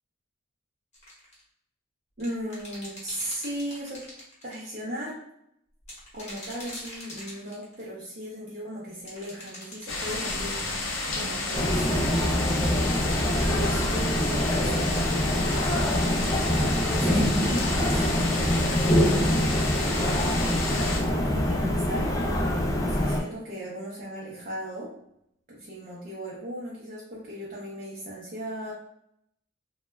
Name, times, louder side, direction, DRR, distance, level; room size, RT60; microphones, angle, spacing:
sound 1, 0.9-1.4 2.2-4.7 5.8-7.9 9.1-10.0, left 1 dB, 35° left, 0.9 m, -43 dB
voice 1, 2.2-4.0 4.4-5.2 6.1-10.8 11.2-13.1 13.5-19.2 19.7-20.3 20.7-22.5 22.9-24.9 25.5-28.7, equal, 45° right, -6 dB, 0.6 m, -37 dB
sound 2, 9.9-21.0, left 3 dB, 85° left, 0.6 m, -31 dB
sound 3, 11.5-23.2, equal, 15° left, 0.3 m, -25 dB
2.2 x 2.0 x 3.3 m, 0.76 s
head